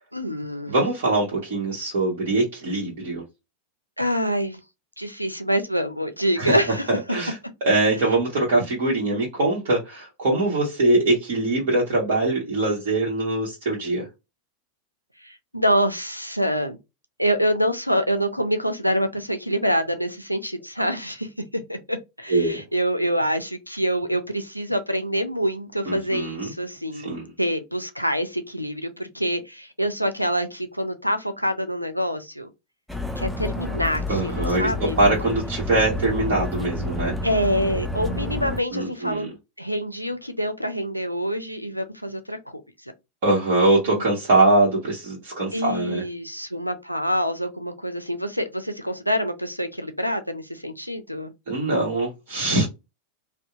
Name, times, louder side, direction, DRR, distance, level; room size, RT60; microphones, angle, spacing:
voice 1, 0.1-0.7 4.0-4.6 5.0-7.0 15.2-16.8 17.2-21.3 21.7-27.1 27.4-32.5 33.2-35.0 37.2-42.4 43.9-44.0 45.5-51.3, equal, 90° left, 0.4 m, -26 dB
voice 2, 0.7-3.2 6.4-6.6 6.9-7.3 7.6-14.0 22.3-22.5 25.9-26.5 27.0-27.3 34.1-34.7 35.0-37.1 38.7-39.3 43.2-46.0 51.5-52.7, right 2 dB, 50° right, 1.1 m, -22 dB
sound 1, 32.9-38.6, left 2 dB, ahead, 0.4 m, -29 dB
2.7 x 2.1 x 2.4 m
figure-of-eight pair, 90°, 0 cm